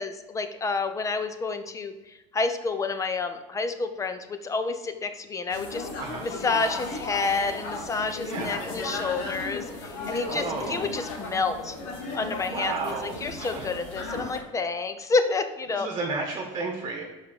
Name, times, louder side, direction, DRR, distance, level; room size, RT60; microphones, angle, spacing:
voice 1, 0.0-1.9 2.3-5.9 6.2-11.8 12.1-15.9, left 4 dB, 20° left, 9 dB, 0.8 m, -29 dB
sound 1, 5.5-14.4, left 2 dB, 70° left, 2.1 m, -35 dB
voice 2, 8.2-8.6 10.2-10.8 12.5-13.7 15.7-17.0, right 3 dB, 35° right, 0 dB, 1.6 m, -33 dB
5.7 x 5.0 x 6.7 m, 1.1 s
supercardioid pair, 115°, 15 cm